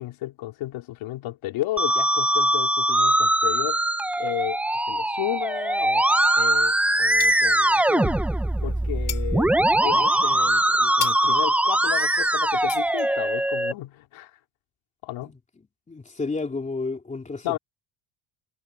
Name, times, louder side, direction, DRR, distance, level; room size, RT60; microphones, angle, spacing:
voice 1, 0.0-3.8 4.2-4.6 4.9-8.2 8.6-14.3 15.0-15.3 17.4-17.6, left 15 dB, 70° left, 3.1 m, -33 dB
Musical instrument, 1.8-13.7, right 1 dB, 5° right, 0.4 m, -22 dB
sound 1, 5.5-6.6 6.9-8.0 8.3-13.5, left 10 dB, 40° left, 2.2 m, -39 dB
voice 2, 15.9-17.6, left 3 dB, 15° left, 3.5 m, -31 dB
cardioid pair, 175°, 49 cm